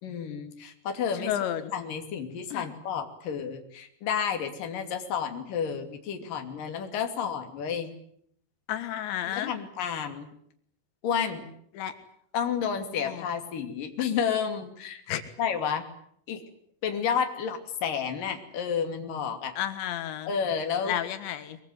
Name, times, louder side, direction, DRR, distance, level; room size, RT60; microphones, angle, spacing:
voice 1, 0.0-1.4 1.7-7.9 9.3-10.3 11.0-11.5 12.3-15.0 15.4-15.9 16.3-16.4 16.8-19.6 20.3-21.0, left 7 dB, 55° left, 5 dB, 4.1 m, -31 dB
voice 2, 1.2-1.6 2.5-2.6 8.7-9.5 11.8-11.9 13.1-13.2 15.1-15.2 19.6-20.3 20.9-21.6, left 11 dB, 90° left, 10 dB, 3.9 m, -31 dB
24.0 x 22.5 x 9.3 m, 0.68 s
omnidirectional pair, 5.0 m